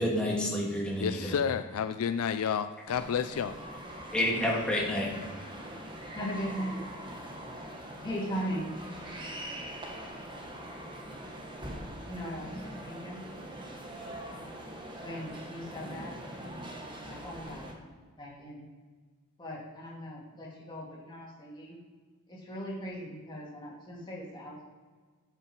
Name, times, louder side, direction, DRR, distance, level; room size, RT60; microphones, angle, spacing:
voice 1, 0.0-1.4 4.1-5.1, left 1 dB, 5° left, -4 dB, 1.8 m, -29 dB
voice 2, 1.0-3.5, left 7 dB, 75° left, 10 dB, 0.4 m, -30 dB
sound 1, 2.9-17.7, right 1 dB, 20° right, 1.1 m, -43 dB
voice 3, 6.1-6.8 8.0-8.7 12.1-13.2 15.0-16.2 17.1-17.9 18.2-18.6 19.4-21.8 22.3-24.6, equal, 20° left, -4 dB, 2.4 m, -39 dB
10.5 x 5.8 x 4.6 m, 1.5 s
head